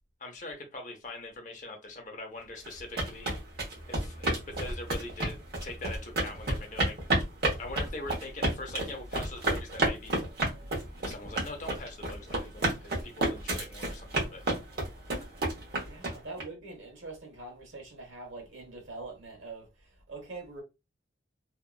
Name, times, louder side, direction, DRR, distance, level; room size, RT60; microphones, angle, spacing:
voice 1, 0.2-3.3 3.9-6.9 7.6-10.2 11.0-14.4 16.0-16.2, left 2 dB, 40° left, 0.7 m, -42 dB
sound 1, 2.7-16.4, right 2 dB, 55° right, 1.1 m, -30 dB
voice 2, 15.7-19.7 20.1-20.6, right 3 dB, 85° right, 1.1 m, -43 dB
2.8 x 2.4 x 2.3 m
head